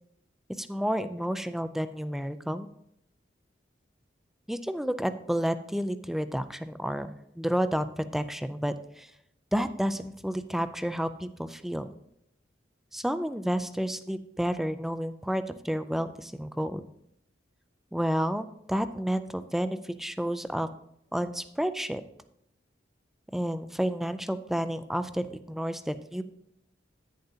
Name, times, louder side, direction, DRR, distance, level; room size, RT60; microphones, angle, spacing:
voice 1, 0.6-2.7 4.5-9.1 9.5-11.9 12.9-16.9 17.9-20.7 21.1-22.0 23.3-26.2, equal, ahead, 11 dB, 0.4 m, -30 dB
10.5 x 9.4 x 2.7 m, 0.77 s
head